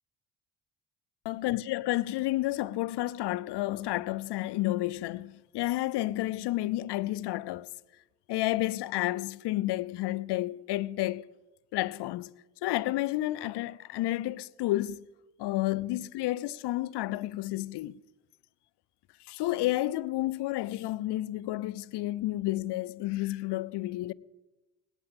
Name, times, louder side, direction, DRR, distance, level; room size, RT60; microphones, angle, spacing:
voice 1, 1.2-7.7 8.3-11.3 11.7-12.3 12.6-15.0 15.4-18.0 19.3-24.1, left 16 dB, 75° left, 0.6 m, -31 dB
18.0 x 9.0 x 7.6 m
supercardioid pair, 65°, 41 cm